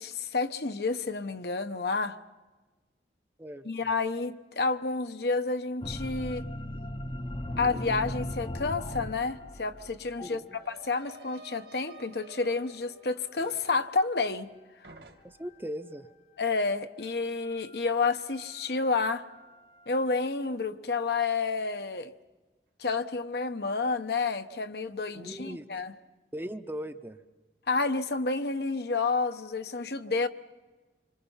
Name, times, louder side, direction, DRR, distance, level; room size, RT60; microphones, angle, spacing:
voice 1, 0.0-2.2 3.6-6.5 7.6-10.4 10.7-14.5 16.4-19.2 19.9-22.1 22.8-25.9 27.7-30.3, left 4 dB, 65° left, 0.9 m, -30 dB
sound 1, 5.8-11.2 12.4-13.5 13.9-14.0 16.4-16.5 17.0-20.0, left 1 dB, 30° left, 0.7 m, -39 dB
sound 2, 9.0-9.1 9.3-14.6 14.8-15.6, right 3 dB, 75° right, 2.2 m, -53 dB
voice 2, 10.2-10.6 15.2-16.1 25.1-25.7 26.3-27.2, equal, 10° right, 0.6 m, -39 dB
26.5 x 24.5 x 5.7 m
head